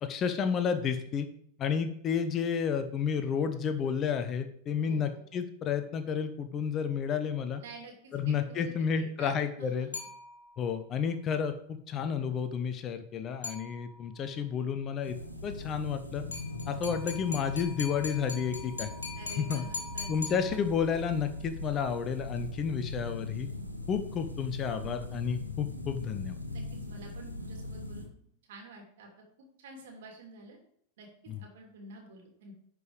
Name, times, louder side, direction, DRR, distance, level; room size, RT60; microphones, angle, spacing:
voice 1, 0.0-1.3 1.6-7.6 8.1-9.9 10.6-15.2 15.4-16.2 16.7-18.9 19.4-19.6 20.1-23.5 23.9-26.4 31.3-31.4, left 7 dB, 30° left, 9 dB, 0.9 m, -31 dB
voice 2, 4.8-5.2 7.6-9.9 19.1-20.1 26.5-28.1 28.5-29.1 29.6-30.6 31.0-31.1 31.4-32.5, right 3 dB, 55° right, 1 dB, 2.9 m, -49 dB
sound 1, 9.9-10.7 13.4-14.2 16.3-21.0, left 4 dB, 70° left, 2.0 m, -42 dB
sound 2, 15.0-28.0, left 2 dB, 90° left, 1.2 m, -40 dB
11.0 x 5.2 x 4.9 m, 0.64 s
figure-of-eight pair, 90°, 0 cm